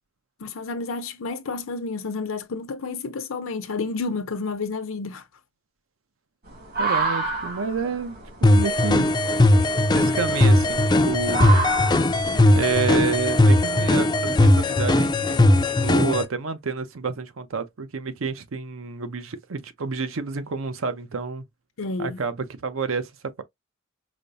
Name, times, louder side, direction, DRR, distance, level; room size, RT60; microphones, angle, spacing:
voice 1, 0.4-5.2 21.8-22.2, left 4 dB, 75° left, 0.7 m, -30 dB
sound 1, 6.5-13.2, right 4 dB, 50° right, 1.5 m, -31 dB
voice 2, 6.8-9.1 9.8-11.6 12.2-21.4 22.0-23.4, right 5 dB, 80° right, 0.6 m, -30 dB
sound 2, 8.4-16.2, left 1 dB, 20° left, 0.3 m, -18 dB
5.0 x 2.0 x 2.6 m
head